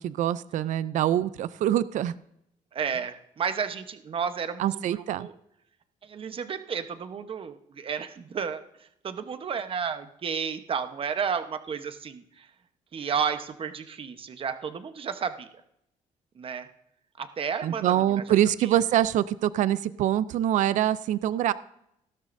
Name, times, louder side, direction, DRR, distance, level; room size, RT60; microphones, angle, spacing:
voice 1, 0.0-2.1 4.6-5.3 17.6-21.5, right 12 dB, 65° right, 16 dB, 0.4 m, -25 dB
voice 2, 2.7-5.3 6.0-12.5 12.9-15.5 16.4-16.7 17.2-18.2 18.6-18.8, right 6 dB, 40° right, 9 dB, 1.0 m, -32 dB
16.0 x 12.5 x 2.6 m, 0.76 s
cardioid pair, 120°, 14 cm